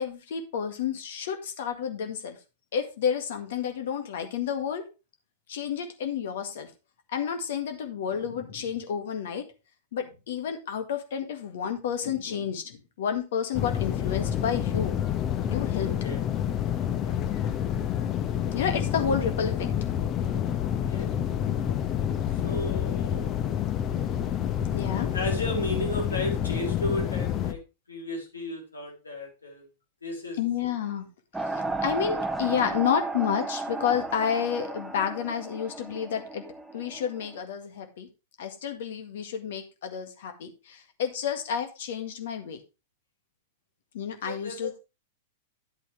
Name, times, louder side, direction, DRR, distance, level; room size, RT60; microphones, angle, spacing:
voice 1, 0.0-2.4 2.7-4.9 5.5-6.7 7.1-9.5 9.9-15.0 15.5-15.9 18.5-19.7 24.7-25.2 30.4-31.1 31.4-36.4 36.7-38.1 38.4-42.6 43.9-44.7, left 8 dB, 60° left, 7 dB, 1.8 m, -30 dB
sound 1, 13.5-27.5, left 10 dB, 30° left, 1.0 m, -28 dB
voice 2, 15.8-16.2 16.8-17.2 20.9-21.1 22.4-23.3 25.1-27.6 27.9-29.7 30.0-30.4 44.2-44.6, left 1 dB, 80° left, 1 dB, 3.5 m, -34 dB
sound 2, 31.3-37.4, right 3 dB, 5° right, 1.0 m, -34 dB
10.5 x 8.2 x 3.3 m, 0.28 s
figure-of-eight pair, 100°, 0 cm